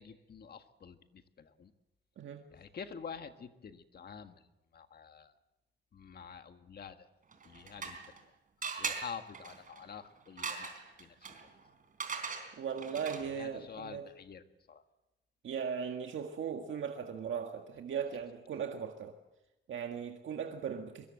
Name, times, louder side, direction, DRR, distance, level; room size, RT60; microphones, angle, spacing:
voice 1, 0.0-1.7 2.5-4.5 4.7-5.3 5.9-7.1 7.4-8.0 8.8-11.4 13.3-14.8, left 6 dB, 55° left, 8 dB, 1.7 m, -48 dB
sound 1, 7.3-8.2 8.6-13.4, right 5 dB, 45° right, 3.7 m, -41 dB
voice 2, 12.6-14.0 15.4-19.2 19.7-21.1, right 7 dB, 90° right, 4 dB, 1.8 m, -38 dB
24.0 x 22.0 x 7.7 m, 0.97 s
wide cardioid pair, 155°, 20 cm